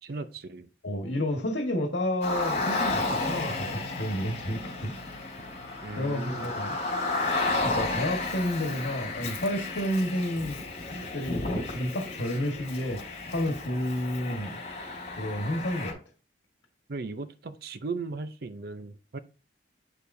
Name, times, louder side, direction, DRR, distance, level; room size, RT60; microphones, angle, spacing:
voice 1, 0.0-0.7 5.8-6.6 16.9-19.2, right 3 dB, 55° right, 0.5 m, -37 dB
voice 2, 0.8-4.9 6.0-6.8 7.6-10.5 11.1-14.6 15.2-16.0, left 1 dB, 75° left, 1.5 m, -30 dB
Car, 2.2-15.9, left 2 dB, 40° left, 3.7 m, -32 dB
8.6 x 6.7 x 2.6 m
head